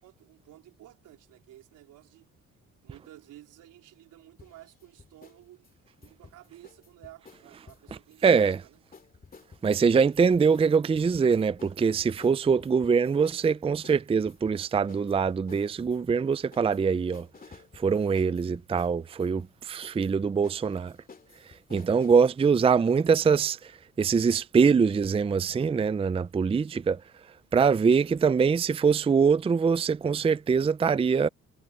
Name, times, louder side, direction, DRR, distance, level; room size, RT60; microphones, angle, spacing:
voice 1, 0.0-2.3 2.8-5.7 6.0-8.8, right 14 dB, 90° right, 4.1 m, -52 dB
sound 1, 4.4-5.4 5.6-8.6 8.9-22.3, left 4 dB, 30° left, 2.4 m, -53 dB
voice 2, 8.2-8.6 9.6-17.3 17.7-20.9 21.7-27.0 27.5-31.3, right 5 dB, 20° right, 0.4 m, -23 dB
cardioid pair, 90°, 30 cm